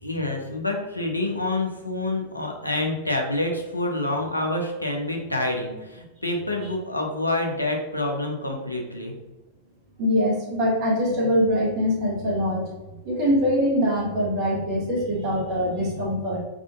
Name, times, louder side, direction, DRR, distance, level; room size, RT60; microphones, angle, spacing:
voice 1, 0.0-9.1, left 2 dB, 85° left, 2 dB, 0.5 m, -27 dB
voice 2, 10.0-12.6 13.0-16.4, equal, 40° right, -3 dB, 1.0 m, -23 dB
3.6 x 2.4 x 2.4 m, 1.1 s
figure-of-eight pair, 90°, 0 cm